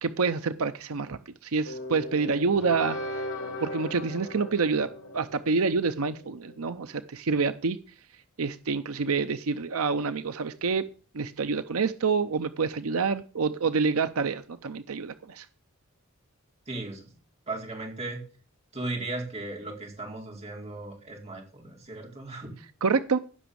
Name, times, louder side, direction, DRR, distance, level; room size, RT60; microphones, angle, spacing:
voice 1, 0.0-3.3 3.6-7.8 8.4-10.8 11.1-15.5 22.8-23.2, right 4 dB, 80° right, 11 dB, 0.6 m, -27 dB
sound 1, 1.6-6.6, left 1 dB, 70° left, 4.1 m, -38 dB
voice 2, 16.7-17.1 17.5-18.2 18.7-22.5, right 2 dB, 30° right, 0 dB, 4.5 m, -36 dB
16.0 x 6.2 x 6.9 m, 0.39 s
head